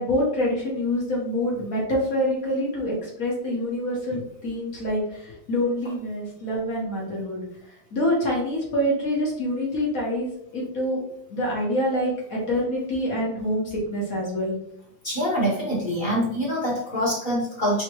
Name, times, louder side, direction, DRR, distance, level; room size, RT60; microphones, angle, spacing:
voice 1, 0.0-7.4 7.9-11.0 11.3-14.5, equal, 45° left, -4 dB, 1.8 m, -26 dB
voice 2, 15.0-17.8, equal, 25° left, -6 dB, 1.6 m, -25 dB
4.5 x 3.4 x 3.0 m, 0.73 s
omnidirectional pair, 2.1 m